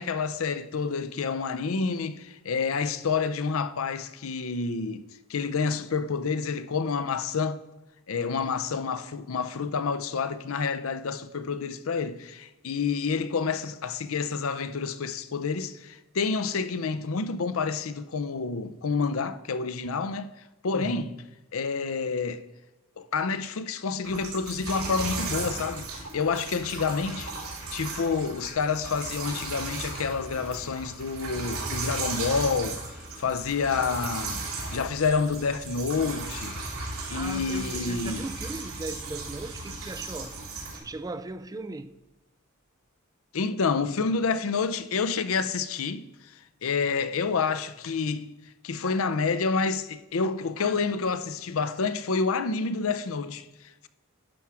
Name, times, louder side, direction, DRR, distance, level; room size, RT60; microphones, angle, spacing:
voice 1, 0.0-5.0 5.3-7.6 8.1-20.3 20.6-21.2 21.5-22.4 23.0-36.6 37.1-38.2 43.3-48.3 48.6-53.9, left 5 dB, 75° left, 0.6 m, -29 dB
voice 2, 20.7-21.0 37.1-40.4 40.7-41.9, right 2 dB, 15° right, 0.3 m, -37 dB
sound 1, 24.0-40.8, right 3 dB, 85° right, 3.0 m, -36 dB
sound 2, 34.8-41.6, right 3 dB, 70° right, 0.8 m, -46 dB
11.5 x 5.8 x 4.8 m
head